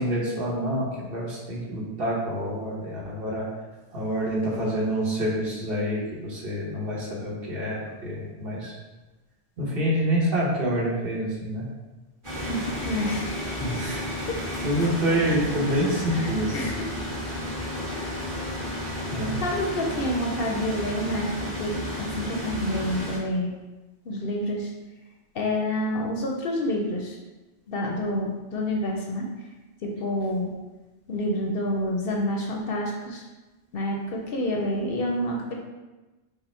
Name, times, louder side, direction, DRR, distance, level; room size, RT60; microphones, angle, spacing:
voice 1, 0.0-3.5 3.9-8.8 9.6-11.6 13.6-14.0 14.6-16.7 19.1-19.4, equal, 55° right, -5 dB, 1.3 m, -27 dB
sound 1, 12.2-23.2, left 1 dB, 25° right, 1.4 m, -32 dB
voice 2, 12.8-13.3 14.3-14.4 16.2-16.7 18.0-18.2 19.4-23.5 24.0-24.7 25.3-27.2 27.7-29.3 29.8-30.5 31.1-33.3 33.7-35.5, left 1 dB, 60° left, 0 dB, 0.8 m, -28 dB
5.6 x 2.1 x 4.3 m, 1.1 s
omnidirectional pair, 1.2 m